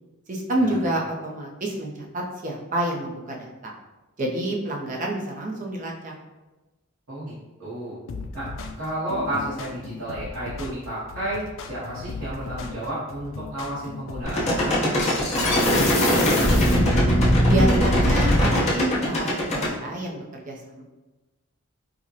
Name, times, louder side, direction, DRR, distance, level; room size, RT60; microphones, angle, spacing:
voice 1, 0.3-3.7 4.2-6.1 17.5-20.8, right 1 dB, 35° right, 0 dB, 0.5 m, -28 dB
voice 2, 7.6-8.0 8.3-8.5 8.8-16.8, right 1 dB, 65° right, -11 dB, 1.0 m, -32 dB
sound 1, 8.1-16.1, left 3 dB, 65° left, 0.3 m, -37 dB
sound 2, 14.2-19.7, equal, 30° left, 0.8 m, -20 dB
4.8 x 2.1 x 2.8 m, 1.1 s
head